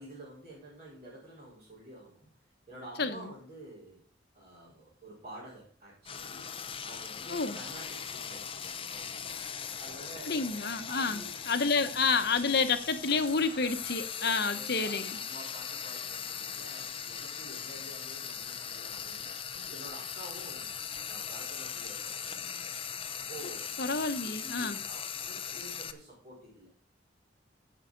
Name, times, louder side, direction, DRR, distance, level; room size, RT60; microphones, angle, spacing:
voice 1, 0.0-2.3 2.7-4.0 4.3-6.5 6.8-9.3 9.7-11.8 13.5-13.8 14.2-20.8 21.1-22.7 23.1-23.7 24.2-26.7, right 1 dB, 35° right, -7 dB, 5.6 m, -49 dB
Frying (food), 6.0-25.9, left 7 dB, 30° left, 0.8 m, -39 dB
voice 2, 10.3-11.2 11.5-15.2 23.8-24.8, left 4 dB, 55° left, 9 dB, 1.2 m, -29 dB
15.5 x 5.8 x 5.3 m, 0.43 s
head